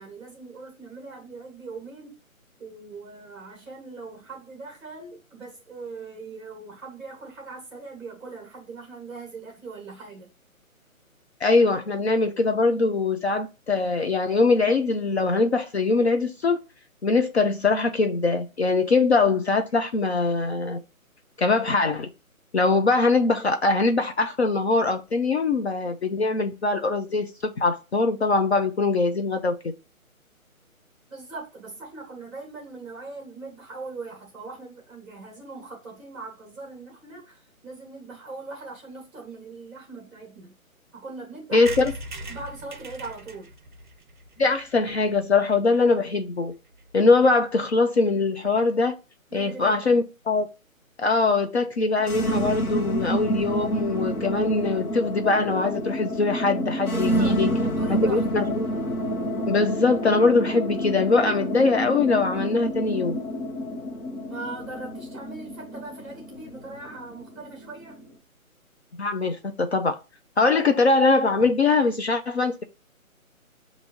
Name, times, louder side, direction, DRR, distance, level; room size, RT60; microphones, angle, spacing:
voice 1, 0.0-2.2 2.6-10.3 31.1-40.5 40.9-41.9 42.3-43.5 49.3-50.0 56.9-58.2 64.3-68.0, right 3 dB, ahead, 0.9 m, -40 dB
voice 2, 11.4-16.6 17.0-20.8 21.4-22.1 22.5-29.5 41.5-41.9 44.4-46.5 46.9-49.0 49.3-50.5 51.0-57.5 57.9-58.7 59.5-63.2 69.0-70.0 70.4-72.6, left 3 dB, 50° left, 0.5 m, -22 dB
sound 1, 41.7-45.3 45.8-45.9 46.1-46.2 46.4-46.5 46.7-46.9, right 2 dB, 35° right, 0.5 m, -40 dB
sound 2, 52.0-68.0, equal, 85° left, 1.1 m, -29 dB
6.3 x 2.7 x 2.9 m
figure-of-eight pair, 150°, 42 cm